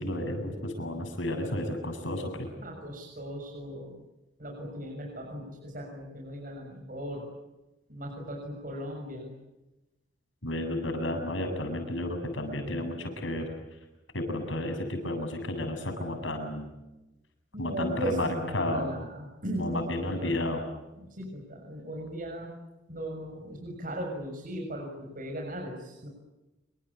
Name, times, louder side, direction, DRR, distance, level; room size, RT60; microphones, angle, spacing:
voice 1, 0.0-2.5 10.4-13.5 14.1-16.7 17.6-18.3 18.5-18.9 19.6-20.6, left 1 dB, 80° left, 6 dB, 7.8 m, -32 dB
voice 2, 2.6-4.0 4.4-7.3 7.9-9.3 17.5-20.7 21.0-22.6 22.9-26.1, equal, 45° right, 1 dB, 6.6 m, -38 dB
27.5 x 25.0 x 8.5 m, 1.0 s
head